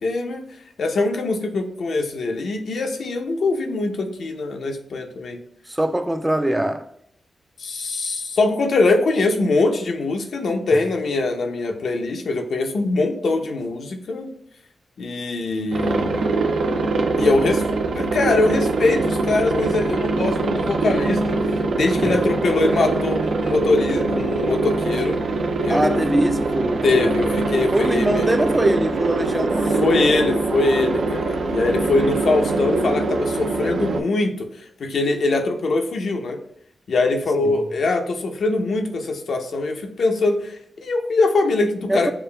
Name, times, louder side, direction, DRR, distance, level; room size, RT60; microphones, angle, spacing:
voice 1, 0.0-0.4 0.8-5.4 7.6-14.3 15.0-16.4 17.2-17.6 17.9-25.2 25.6-26.0 26.8-28.3 29.8-36.4 36.9-42.1, left 3 dB, 70° left, 0.6 m, -22 dB
voice 2, 5.7-6.9 10.7-10.8 22.0-22.1 25.7-27.4 27.7-30.6 37.4-37.6 41.9-42.1, right 1 dB, 15° right, 0.3 m, -23 dB
Aircraft, 15.7-34.0, right 3 dB, 75° right, 0.5 m, -23 dB
6.8 x 2.4 x 2.2 m
cardioid pair, 75°, 0 cm